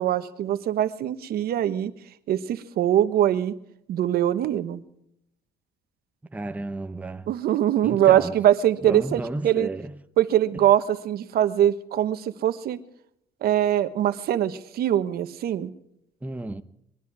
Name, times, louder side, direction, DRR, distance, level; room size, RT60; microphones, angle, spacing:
voice 1, 0.0-1.9 2.3-3.5 3.9-4.8 7.3-9.7 10.2-12.8 13.4-15.7, right 11 dB, 65° right, 1.1 m, -22 dB
voice 2, 6.3-7.3 7.8-8.3 8.8-9.9 10.6-10.7 16.2-16.6, right 2 dB, 10° right, 0.8 m, -32 dB
21.5 x 13.0 x 4.8 m
cardioid pair, 110°, 17 cm